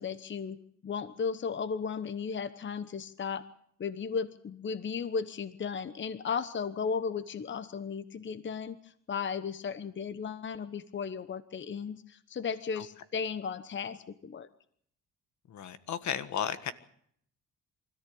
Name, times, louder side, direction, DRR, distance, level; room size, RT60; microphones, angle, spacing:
voice 1, 0.0-3.4 3.8-14.5, left 6 dB, 40° left, 13 dB, 1.1 m, -35 dB
voice 2, 15.5-16.7, left 8 dB, 70° left, 12 dB, 1.6 m, -34 dB
25.0 x 14.0 x 8.7 m, 0.68 s
cardioid pair, 90°, 30 cm